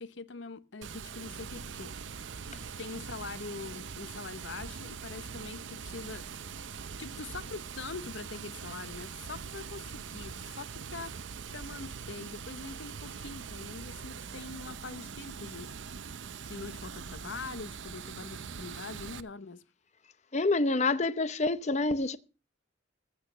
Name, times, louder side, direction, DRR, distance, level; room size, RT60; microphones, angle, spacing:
voice 1, 0.0-1.9 2.8-6.5 6.8-11.2 11.5-15.7 16.5-19.6, left 4 dB, 65° left, 0.8 m, -43 dB
Water, 0.8-19.2, right 6 dB, 65° right, 0.7 m, -42 dB
voice 2, 20.3-22.2, left 2 dB, 35° left, 0.7 m, -27 dB
15.0 x 6.4 x 6.7 m
head